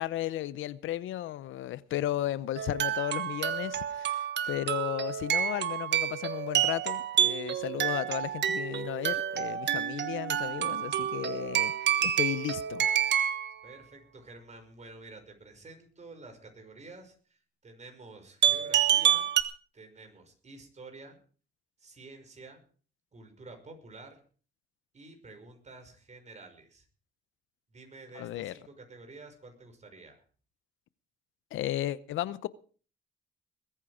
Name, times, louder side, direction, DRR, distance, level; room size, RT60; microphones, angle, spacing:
voice 1, 0.0-11.7 12.0-12.9 28.2-28.5 31.5-32.5, left 13 dB, 80° left, 0.8 m, -34 dB
sound 1, 2.6-13.5 18.4-19.4, right 10 dB, 65° right, 1.4 m, -28 dB
voice 2, 13.6-19.3 19.7-21.2 21.8-22.6 23.1-24.2 24.9-26.9 27.7-30.2, right 3 dB, 35° right, 5.6 m, -50 dB
21.0 x 9.4 x 5.0 m
cardioid pair, 90°, 20 cm